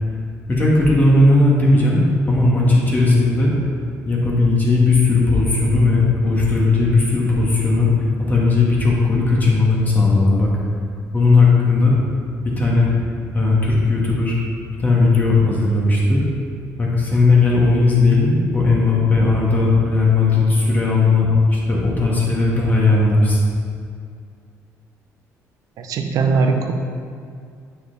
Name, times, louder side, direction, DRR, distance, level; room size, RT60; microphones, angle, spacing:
voice 1, 0.5-2.0 2.3-3.5 4.0-10.5 11.1-12.0 12.4-12.9 13.3-14.4 14.8-16.2 16.8-23.4, left 3 dB, 25° left, -4 dB, 1.7 m, -16 dB
voice 2, 25.8-26.7, right 4 dB, 70° right, 5 dB, 0.7 m, -19 dB
8.3 x 4.7 x 4.0 m, 2.3 s
cardioid pair, 90°, 6 cm